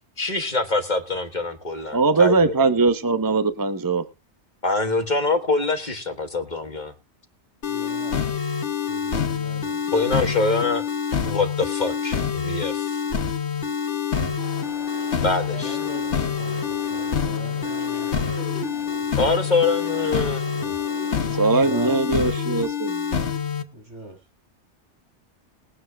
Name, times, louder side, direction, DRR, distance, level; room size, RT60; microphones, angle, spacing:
voice 1, 0.2-2.5 4.6-6.9 9.9-10.8 11.2-13.0 15.2-15.8 19.2-20.8, left 3 dB, 40° left, 7 dB, 1.6 m, -24 dB
voice 2, 1.9-4.0 21.3-23.0, right 3 dB, 20° right, 10 dB, 0.9 m, -20 dB
sound 1, 7.6-23.6, left 7 dB, 70° left, 1.6 m, -26 dB
voice 3, 7.6-8.6 8.9-9.8 15.2-18.1 21.6-22.0 23.7-24.2, right 1 dB, 85° right, 1 dB, 6.6 m, -40 dB
sound 2, 14.4-21.5, right 1 dB, 50° right, 6.7 m, -41 dB
21.0 x 9.4 x 2.3 m, 0.27 s
omnidirectional pair, 1.2 m